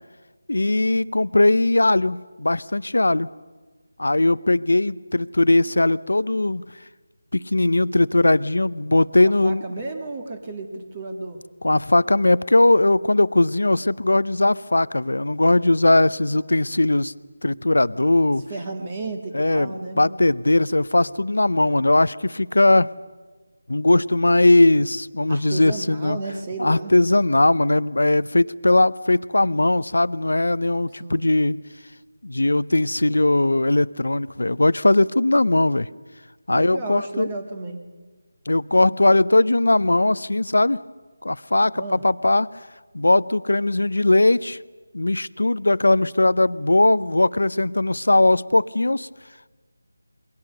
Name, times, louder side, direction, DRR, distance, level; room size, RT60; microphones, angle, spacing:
voice 1, 0.5-3.3 4.0-6.6 7.3-9.6 11.6-17.1 17.4-18.5 19.3-19.7 20.0-22.9 23.7-26.2 26.6-31.6 32.2-35.9 36.5-37.3 38.5-40.8 41.2-42.5 42.9-44.6 44.9-49.1, left 2 dB, 85° left, 18 dB, 0.7 m, -19 dB
voice 2, 9.2-11.4 16.0-16.8 18.5-20.3 20.9-21.1 25.3-27.0 31.0-31.3 36.5-37.8 41.7-42.0, right 2 dB, 30° right, 5 dB, 1.9 m, -33 dB
28.0 x 23.0 x 6.7 m, 1.3 s
figure-of-eight pair, 165°, 0 cm